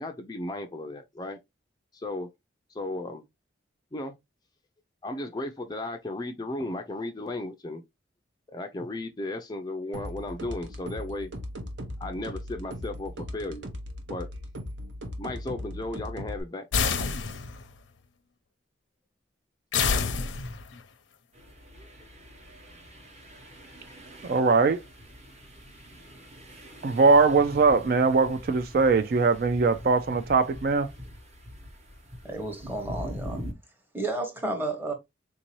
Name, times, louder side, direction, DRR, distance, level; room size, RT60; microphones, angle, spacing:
voice 1, 0.0-1.4 1.9-2.3 2.7-3.2 3.9-4.1 5.0-7.8 8.5-11.3 12.0-13.6 14.1-14.3 15.2-16.6, left 2 dB, 20° left, 0.4 m, -35 dB
sound 1, 9.9-16.4, equal, 75° right, 0.8 m, -38 dB
sound 2, 16.7-17.7 19.7-20.8, left 5 dB, 80° left, 0.6 m, -27 dB
sound 3, 21.3-33.5, equal, 35° right, 1.0 m, -43 dB
voice 2, 24.2-24.8 26.8-30.9, right 4 dB, 50° right, 0.3 m, -21 dB
voice 3, 32.2-33.4 33.9-34.9, right 2 dB, 10° right, 0.8 m, -32 dB
3.6 x 2.7 x 2.9 m
head